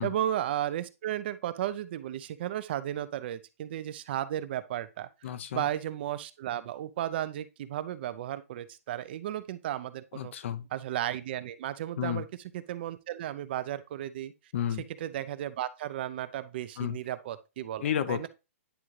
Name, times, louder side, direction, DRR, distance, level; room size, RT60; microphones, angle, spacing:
voice 1, 0.0-5.1 5.5-10.3 10.7-12.3 12.5-14.3 15.0-18.3, right 12 dB, 45° right, 0.5 m, -34 dB
voice 2, 5.2-5.6 10.1-10.6 12.0-12.2 14.5-14.8 16.8-17.0 17.8-18.3, left 9 dB, 55° left, 0.7 m, -31 dB
9.9 x 3.6 x 3.2 m
hypercardioid pair, 155°, 8 cm